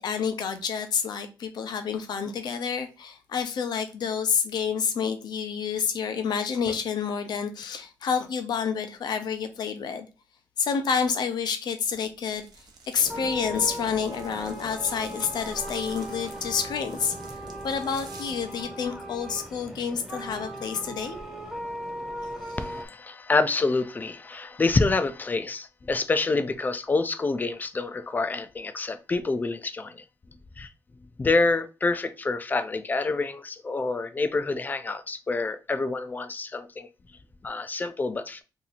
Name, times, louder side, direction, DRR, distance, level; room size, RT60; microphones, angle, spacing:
voice 1, 0.0-10.1 10.6-12.5 12.9-17.4 17.6-21.2 22.2-22.6, left 6 dB, 70° left, 0.7 m, -29 dB
sound 1, 11.8-18.6, right 3 dB, 65° right, 0.8 m, -49 dB
sound 2, 13.0-22.8, right 1 dB, 5° right, 0.9 m, -38 dB
voice 2, 22.6-30.0 30.6-30.7 31.2-36.9 37.4-38.4, left 3 dB, 25° left, 0.4 m, -27 dB
2.8 x 2.6 x 4.0 m
wide cardioid pair, 140°, 7 cm